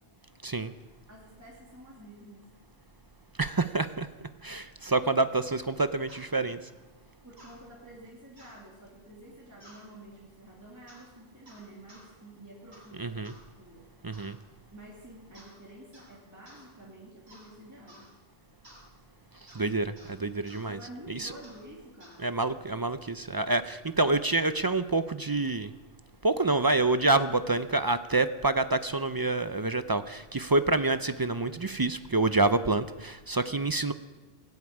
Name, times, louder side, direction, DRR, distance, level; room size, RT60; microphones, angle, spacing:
voice 1, 0.4-0.7 3.4-6.6 13.0-13.3 14.0-14.4 19.5-20.8 21.1-21.3 22.2-25.7 26.2-33.9, right 2 dB, 30° right, 11 dB, 0.4 m, -27 dB
voice 2, 1.1-2.5 7.2-13.2 13.6-13.9 14.7-18.1 20.6-22.3, right 1 dB, 15° right, -4 dB, 2.5 m, -49 dB
sound 1, 6.1-6.3 7.4-7.6 8.4-8.6 9.6-9.9 10.9-11.1 11.5-12.1 12.7-12.9 13.2-13.4 14.1-14.4 15.3-15.6 15.9-16.2 16.5-16.7 17.3-17.5 17.9-18.1 18.6-18.9 19.5-19.7 20.0-20.1 20.5-20.6 21.4-21.6 22.0-22.2, equal, 75° right, 4.9 m, -54 dB
18.5 x 8.1 x 8.6 m, 1.2 s
omnidirectional pair, 1.1 m